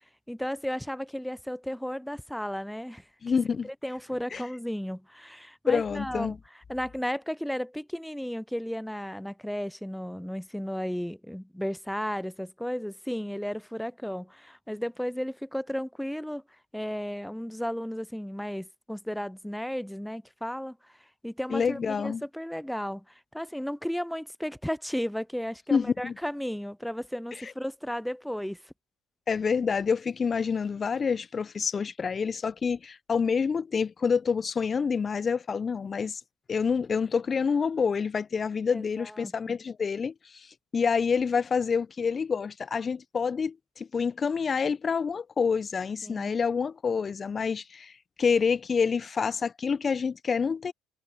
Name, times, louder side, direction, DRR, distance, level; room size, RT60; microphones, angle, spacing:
voice 1, 0.3-3.0 3.8-6.4 6.7-16.4 16.7-20.9 21.2-28.7 38.7-39.6 46.0-46.4, equal, ahead, 0.6 m, -34 dB
voice 2, 3.2-3.7 4.3-4.4 5.7-6.4 21.5-22.2 25.7-26.1 27.4-27.5 29.3-36.2 36.5-40.5 40.7-47.9 48.2-50.7, left 6 dB, 35° left, 1.0 m, -27 dB
hypercardioid pair, 60°, 0 cm